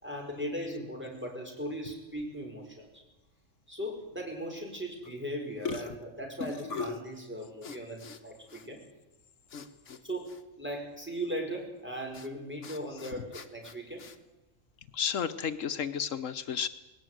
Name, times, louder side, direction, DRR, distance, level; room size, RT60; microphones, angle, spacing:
voice 1, 0.0-3.0 3.7-8.8 10.0-14.1, equal, 10° right, 0 dB, 5.3 m, -38 dB
sound 1, 5.0-5.3 5.6-7.1 7.6-8.2 8.5-8.7 9.5-10.0 10.3-10.4 12.1-12.3 12.6-14.2, left 5 dB, 70° left, 1.5 m, -40 dB
voice 2, 14.9-16.7, left 7 dB, 85° left, 11 dB, 1.4 m, -32 dB
20.0 x 18.0 x 9.4 m, 1.0 s
omnidirectional pair, 1.3 m